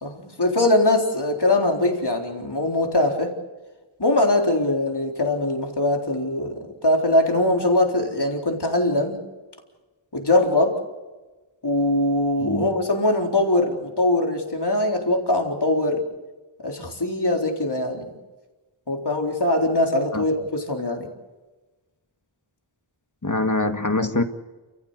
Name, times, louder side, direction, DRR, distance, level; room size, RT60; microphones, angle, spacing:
voice 1, 0.0-3.3 4.0-9.2 10.1-10.8 11.6-16.0 16.6-18.1 18.9-21.1, left 1 dB, 55° left, 2 dB, 4.0 m, -22 dB
voice 2, 12.4-12.7 20.1-20.2 23.2-24.2, left 2 dB, 40° left, 7 dB, 1.9 m, -24 dB
29.5 x 14.5 x 8.2 m, 1.2 s
wide cardioid pair, 45°, 49 cm